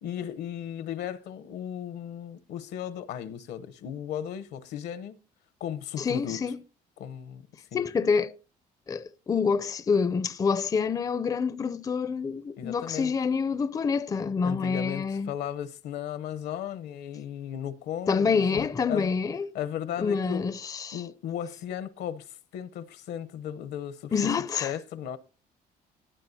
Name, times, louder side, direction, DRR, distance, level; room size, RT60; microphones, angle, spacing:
voice 1, 0.0-5.1 5.6-6.4 7.0-7.9 12.6-13.1 14.4-19.1 19.5-20.5 20.9-24.1 24.6-25.2, left 9 dB, 75° left, 0.9 m, -36 dB
voice 2, 6.0-6.6 7.7-8.3 8.9-15.3 18.1-19.5 20.0-21.0 24.1-24.7, left 5 dB, 20° left, 0.4 m, -27 dB
19.0 x 8.7 x 2.7 m
cardioid pair, 110°, 17 cm